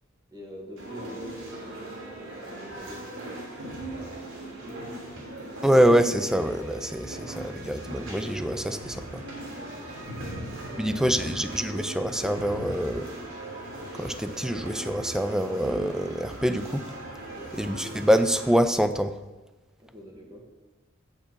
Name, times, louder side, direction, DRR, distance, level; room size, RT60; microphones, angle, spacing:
voice 1, 0.3-5.7 7.0-7.2 9.4-11.3 17.2-17.6 19.8-20.5, equal, 20° right, 0 dB, 1.7 m, -47 dB
sound 1, 0.8-18.5, right 1 dB, 85° right, 3.1 m, -39 dB
voice 2, 5.6-9.2 10.8-13.1 14.0-16.9 17.5-19.2, equal, 5° right, 9 dB, 0.4 m, -25 dB
7.0 x 6.6 x 6.0 m, 1.2 s
head